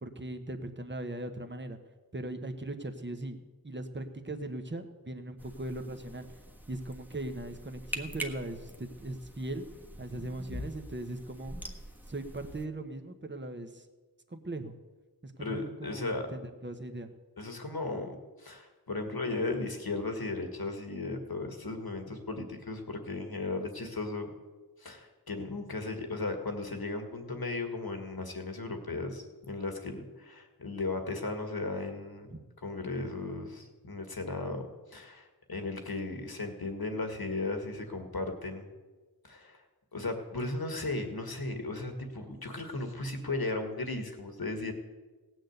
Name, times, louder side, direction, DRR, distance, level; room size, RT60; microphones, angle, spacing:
voice 1, 0.0-1.8 2.1-6.3 6.7-9.6 10.0-11.5 12.1-13.8 14.3-14.8 15.2-17.1 32.3-32.4, right 2 dB, 30° right, 7 dB, 1.2 m, -39 dB
sound 1, 5.4-12.6, equal, 5° right, 1.3 m, -44 dB
voice 2, 15.4-16.3 17.4-24.3 24.8-38.7 39.2-39.6 39.9-44.7, left 2 dB, 65° left, 5 dB, 1.9 m, -36 dB
17.0 x 6.4 x 8.0 m, 1.3 s
wide cardioid pair, 55°, 39 cm